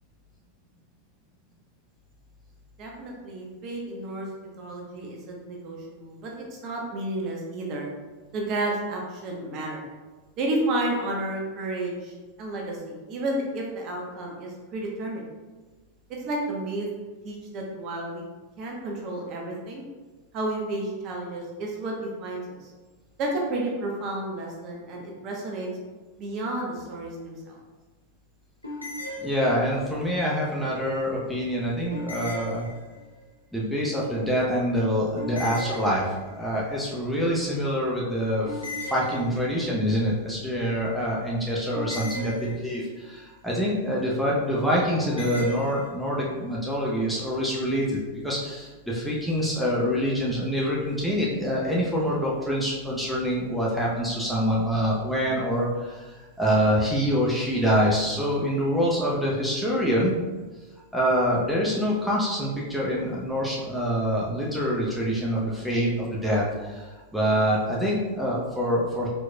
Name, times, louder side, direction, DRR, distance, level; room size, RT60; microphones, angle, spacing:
voice 1, 2.8-4.3 4.6-7.9 8.3-9.8 10.4-12.1 12.4-15.2 16.2-16.9 17.2-18.2 18.6-19.8 20.3-22.7 23.2-25.7 26.2-27.6, right 1 dB, 40° right, -1 dB, 0.9 m, -31 dB
sound 1, 28.6-29.9 31.9-33.2 35.2-36.5 38.5-39.8 41.7-43.0 45.0-45.9, left 1 dB, 90° left, 0.7 m, -37 dB
voice 2, 29.2-32.7 33.5-36.1 36.3-48.0 48.2-56.1 56.4-60.2 60.9-69.1, equal, ahead, -6 dB, 0.8 m, -25 dB
4.6 x 4.0 x 2.2 m, 1.3 s
figure-of-eight pair, 90°, 0 cm